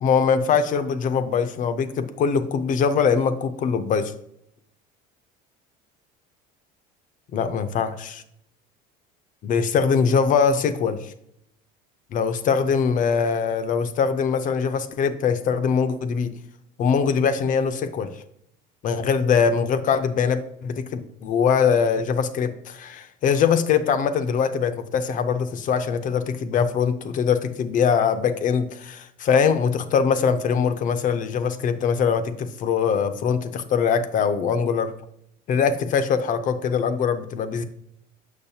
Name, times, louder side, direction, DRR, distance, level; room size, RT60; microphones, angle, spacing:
voice 1, 0.0-4.1 7.3-8.2 9.4-11.1 12.1-16.3 16.8-18.2 18.8-34.9 35.5-37.6, left 6 dB, 40° left, 11 dB, 0.6 m, -22 dB
7.1 x 6.3 x 2.7 m, 0.76 s
cardioid pair, 130°, 20 cm